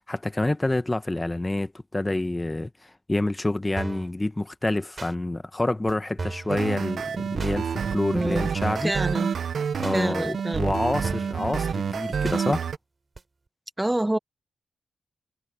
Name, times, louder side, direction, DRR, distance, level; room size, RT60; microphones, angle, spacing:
voice 1, 0.0-8.9 9.8-12.7, left 2 dB, 25° left, 1.5 m, -27 dB
sound 1, 3.8-4.1 5.0-5.1 5.9-6.0 6.2-6.5 7.4-7.6 8.3-8.4 8.6-9.0 9.8-10.0 10.7-10.8 11.0-11.4 12.2-12.4 13.2-13.3, right 3 dB, 45° right, 6.1 m, -35 dB
sound 2, 6.5-12.8, right 6 dB, 75° right, 1.2 m, -28 dB
voice 2, 8.1-8.5 8.8-9.3 9.9-10.7 13.8-14.2, right 1 dB, 15° right, 1.1 m, -27 dB
supercardioid pair, 45°, 0 cm